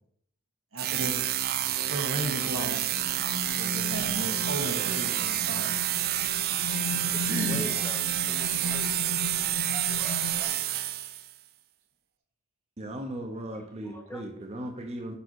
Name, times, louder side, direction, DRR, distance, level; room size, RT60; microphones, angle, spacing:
voice 1, 0.7-1.2 1.9-2.9 3.6-5.7 7.3-7.7, right 1 dB, 75° right, 4 dB, 1.4 m, -34 dB
sound 1, 0.8-11.3, right 12 dB, 45° right, 0.4 m, -29 dB
sound 2, 2.9-10.4, left 4 dB, 90° left, 0.6 m, -37 dB
voice 2, 7.1-8.9 9.5-10.5 13.5-14.2, left 2 dB, 10° left, 6 dB, 0.7 m, -45 dB
voice 3, 12.8-15.2, right 1 dB, 30° right, 3 dB, 0.9 m, -37 dB
7.0 x 5.4 x 4.6 m, 0.65 s
head